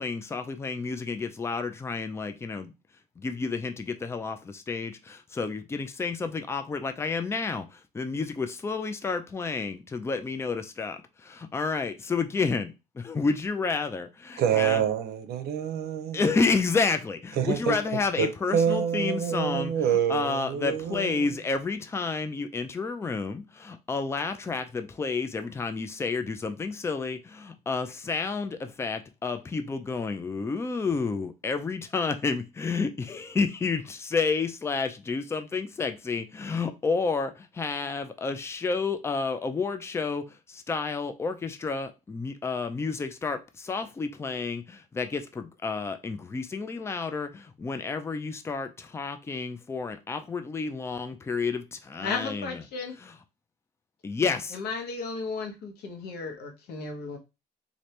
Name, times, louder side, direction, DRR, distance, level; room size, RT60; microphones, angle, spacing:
voice 1, 0.0-2.7 3.2-14.8 16.1-19.7 20.1-52.6 54.0-54.6, left 4 dB, 15° left, 0.4 m, -30 dB
voice 2, 14.4-16.4 17.4-17.8 18.2-21.4, right 8 dB, 70° right, 0.6 m, -27 dB
voice 3, 52.0-53.0 54.5-57.2, left 4 dB, 70° left, 1.0 m, -34 dB
2.8 x 2.6 x 3.2 m
cardioid pair, 110°, 17 cm